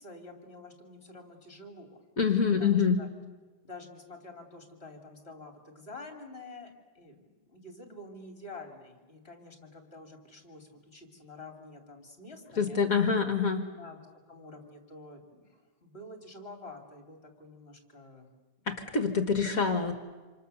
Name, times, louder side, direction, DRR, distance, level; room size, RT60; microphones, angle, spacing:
voice 1, 0.0-2.0 2.6-3.1 3.6-12.8 13.7-14.0 14.3-15.5 15.8-18.3, left 2 dB, 35° left, 4 dB, 3.4 m, -48 dB
voice 2, 2.2-3.0 12.6-13.6 18.7-19.9, left 5 dB, 55° left, 8 dB, 1.9 m, -26 dB
27.5 x 27.0 x 7.0 m, 1.3 s
omnidirectional pair, 1.8 m